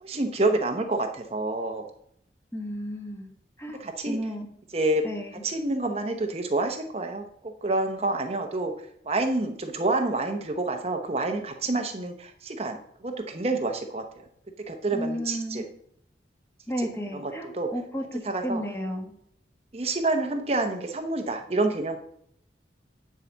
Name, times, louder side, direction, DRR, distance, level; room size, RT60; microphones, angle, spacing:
voice 1, 0.0-1.8 3.8-4.2 4.7-5.0 5.4-8.7 9.0-14.2 14.7-15.6 16.8-17.7 18.2-18.6 19.7-22.0, right 2 dB, 35° right, 4 dB, 0.8 m, -28 dB
voice 2, 2.5-3.3 3.6-4.5 5.0-5.4 14.9-15.7 16.7-19.1, equal, 15° left, 1 dB, 1.6 m, -33 dB
9.8 x 4.8 x 7.2 m, 0.69 s
head